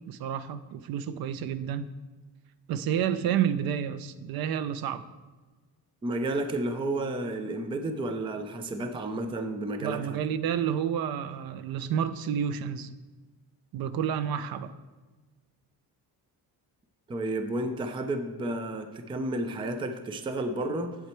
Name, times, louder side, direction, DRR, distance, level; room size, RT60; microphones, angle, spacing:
voice 1, 0.1-1.9 2.7-5.0 9.8-12.9 13.7-14.7, right 9 dB, 65° right, 13 dB, 0.6 m, -30 dB
voice 2, 6.0-10.2 17.1-21.0, right 1 dB, 15° right, 8 dB, 0.4 m, -31 dB
8.1 x 7.8 x 4.4 m, 1.3 s
cardioid pair, 175°, 39 cm